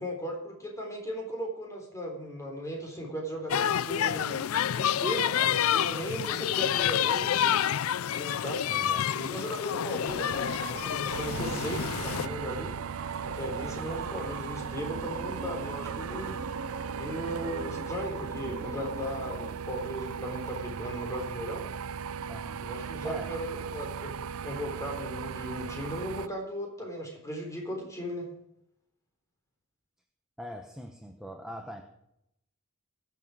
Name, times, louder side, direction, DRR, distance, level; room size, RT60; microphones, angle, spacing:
voice 1, 0.0-4.4 4.7-7.6 8.1-8.6 9.1-12.7 13.2-16.4 17.0-21.7 22.6-28.3, equal, 15° left, 0 dB, 3.7 m, -37 dB
sound 1, 3.5-12.3, left 10 dB, 85° left, 0.4 m, -28 dB
voice 2, 8.7-9.1 22.3-22.6 23.0-23.3 30.4-31.8, equal, 5° right, 3 dB, 1.1 m, -42 dB
sound 2, 10.1-19.5, right 3 dB, 55° right, 2.0 m, -42 dB
sound 3, 11.1-26.3, right 6 dB, 85° right, 0.5 m, -37 dB
22.0 x 7.5 x 4.9 m, 0.79 s
head